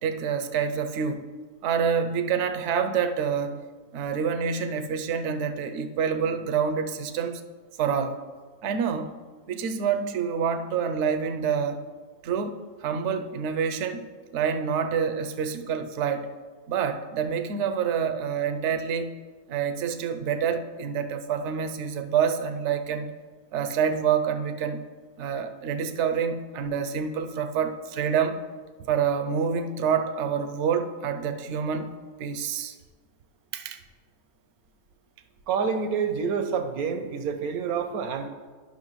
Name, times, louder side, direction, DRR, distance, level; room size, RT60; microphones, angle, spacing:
voice 1, 0.0-1.3 1.6-3.6 3.9-7.4 7.8-8.2 8.6-9.1 9.5-11.8 12.2-14.1 14.3-16.3 16.7-19.2 19.5-23.1 23.5-24.8 25.2-28.4 28.9-31.9 32.2-32.7 33.5-33.8, right 7 dB, 65° right, 8 dB, 0.8 m, -27 dB
voice 2, 35.5-38.3, right 6 dB, 80° right, 7 dB, 1.2 m, -28 dB
11.5 x 5.8 x 3.1 m, 1.5 s
omnidirectional pair, 1.5 m